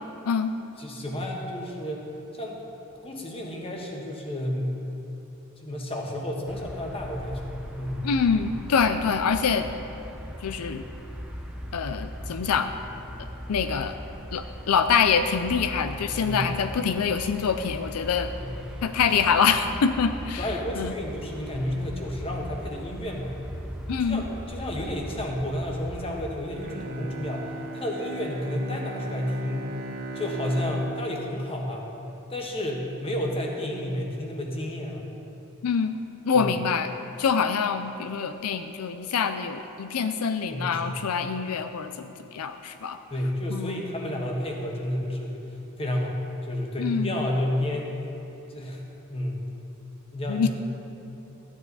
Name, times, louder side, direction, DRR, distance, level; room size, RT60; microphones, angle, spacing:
voice 1, 0.8-2.6 3.0-4.8 5.6-7.4 7.7-8.1 16.2-16.5 18.4-18.5 20.4-23.3 24.0-29.7 30.1-31.9 32.3-35.1 36.3-36.5 40.5-41.0 43.1-46.2 46.4-48.0 48.5-48.8 49.1-49.5 50.1-50.5, left 1 dB, 25° left, 0 dB, 1.4 m, -31 dB
sound 1, 6.5-26.3, equal, 5° right, 0.8 m, -39 dB
voice 2, 8.0-9.7 10.4-10.8 11.7-12.7 13.5-13.9 14.3-18.3 18.8-20.5 20.8-20.9 23.9-24.3 35.6-36.0 36.2-36.9 37.2-43.0 43.5-43.8 46.8-47.1 50.3-50.5, left 6 dB, 85° left, 9 dB, 0.5 m, -25 dB
Bowed string instrument, 26.5-32.7 33.1-33.2, right 2 dB, 45° right, 0.9 m, -38 dB
14.0 x 10.0 x 4.1 m, 3.0 s
head